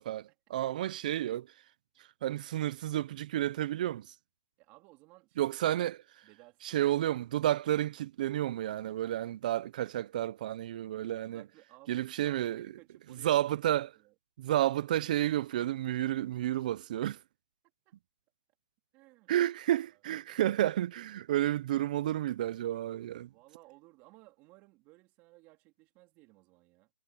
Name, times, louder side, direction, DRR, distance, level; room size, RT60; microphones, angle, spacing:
voice 1, 0.0-1.5 2.2-4.1 5.4-6.0 6.6-11.4 11.9-12.7 13.2-13.9 14.4-17.2 19.3-23.3, right 13 dB, 50° right, 0.7 m, -31 dB
voice 2, 4.6-5.6 6.2-6.9 10.9-13.3 14.0-14.1 14.7-14.8 17.8-17.9 18.9-19.3 19.8-19.9 23.3-26.9, right 22 dB, 30° right, 3.1 m, -59 dB
hypercardioid pair, 150°, 6 cm